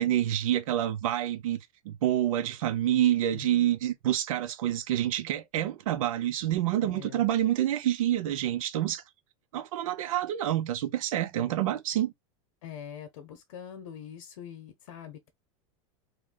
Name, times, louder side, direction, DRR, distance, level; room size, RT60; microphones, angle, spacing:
voice 1, 0.0-9.0 9.5-12.1, right 12 dB, 90° right, 0.6 m, -27 dB
voice 2, 6.8-7.2 12.6-15.3, left 9 dB, 80° left, 0.9 m, -44 dB
3.2 x 2.3 x 3.7 m
supercardioid pair, 170°, 17 cm